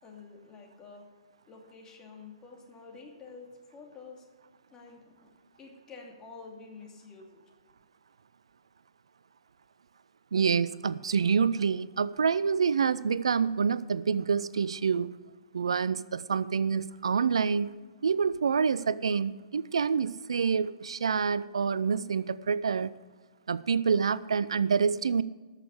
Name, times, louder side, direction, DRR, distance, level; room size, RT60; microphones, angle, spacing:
voice 1, 0.0-1.0 1.5-4.3 4.7-5.3 5.6-7.4, left 4 dB, 20° left, 0 dB, 2.5 m, -49 dB
voice 2, 10.3-15.1 15.5-17.8 18.0-22.9 23.5-25.2, right 6 dB, 70° right, 18 dB, 0.4 m, -27 dB
13.5 x 6.5 x 8.2 m, 1.4 s
figure-of-eight pair, 120°, 3 cm